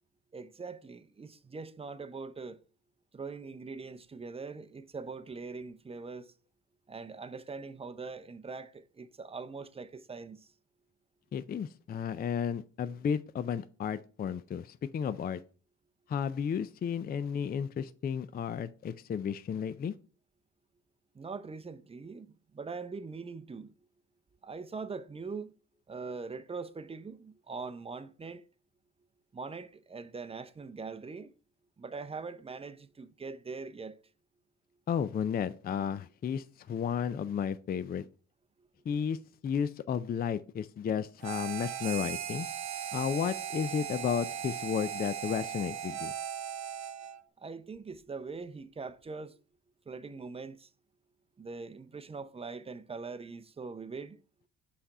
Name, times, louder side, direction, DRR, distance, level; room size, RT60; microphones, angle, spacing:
voice 1, 0.3-2.6 3.1-6.3 6.9-10.5 21.1-23.7 24.4-25.5 25.9-28.4 29.3-31.3 31.8-34.0 47.4-49.4 49.9-50.7 51.4-54.2, right 4 dB, 20° right, 0.6 m, -42 dB
voice 2, 11.3-15.4 16.1-19.9 34.9-38.0 38.9-39.2 39.4-42.5 42.9-46.1, left 7 dB, 30° left, 0.4 m, -33 dB
Harmonica, 41.2-47.2, right 9 dB, 65° right, 0.7 m, -38 dB
5.7 x 4.2 x 4.8 m
cardioid pair, 90°, 30 cm